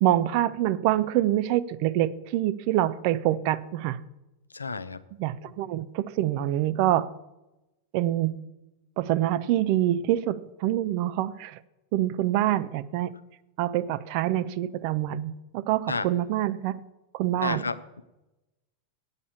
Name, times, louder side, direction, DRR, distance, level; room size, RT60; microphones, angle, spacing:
voice 1, 0.0-4.0 5.2-7.1 7.9-8.3 9.0-11.6 11.9-13.1 13.6-16.8 17.1-17.7, right 13 dB, 45° right, 0.5 m, -26 dB
voice 2, 4.5-5.0 15.9-16.1 17.4-18.0, left 4 dB, 80° left, 0.5 m, -31 dB
8.5 x 8.1 x 7.2 m
figure-of-eight pair, 90°, 0 cm